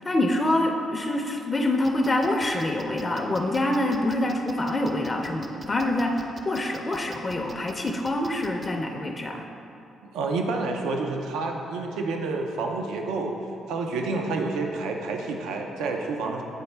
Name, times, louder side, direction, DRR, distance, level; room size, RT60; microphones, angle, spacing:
voice 1, 0.0-9.5, left 1 dB, 25° left, 3 dB, 0.4 m, -26 dB
sound 1, 1.8-8.7, right 2 dB, 25° right, 0.5 m, -45 dB
voice 2, 10.1-13.3 13.7-16.4, right 3 dB, 85° right, 2 dB, 0.5 m, -29 dB
8.2 x 4.2 x 3.3 m, 2.7 s
cardioid pair, 90°, 0 cm